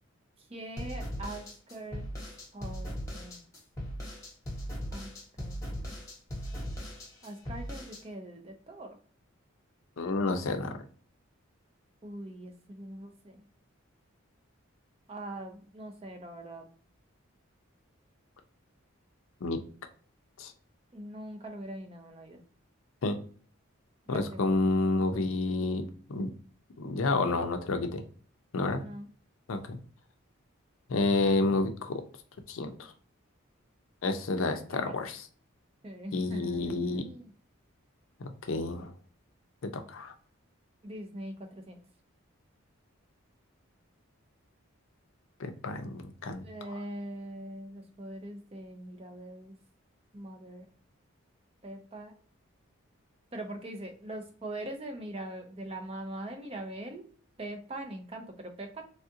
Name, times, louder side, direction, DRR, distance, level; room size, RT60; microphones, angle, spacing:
voice 1, 0.5-2.1 2.5-3.4 4.9-5.1 5.4-6.0 7.2-9.0 12.0-13.4 15.1-16.7 20.9-22.4 24.1-24.7 28.8-29.1 34.7-34.9 35.8-37.3 40.8-41.8 46.4-49.6 50.1-50.6 51.6-52.1 53.3-57.0 57.4-58.8, right 1 dB, 25° right, 4 dB, 0.5 m, -42 dB
sound 1, 0.8-8.0, equal, 15° left, 1.0 m, -39 dB
voice 2, 10.0-10.7 19.4-19.6 20.4-20.5 23.0-23.1 24.1-25.8 26.1-26.3 26.8-28.0 28.5-28.8 29.5-29.8 30.9-32.0 32.5-32.9 34.0-35.2 36.1-37.0 38.2-38.9 39.6-40.1 45.4-46.7, left 3 dB, 70° left, 7 dB, 0.5 m, -30 dB
3.4 x 2.4 x 2.7 m, 0.44 s
head